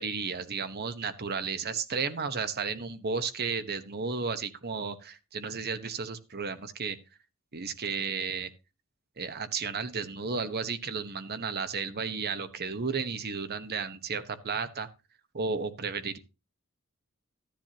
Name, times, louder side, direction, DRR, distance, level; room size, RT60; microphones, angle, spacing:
voice 1, 0.0-7.0 7.5-8.5 9.2-14.9 15.3-16.2, right 5 dB, 50° right, 11 dB, 1.0 m, -33 dB
13.0 x 10.5 x 2.9 m, 0.28 s
head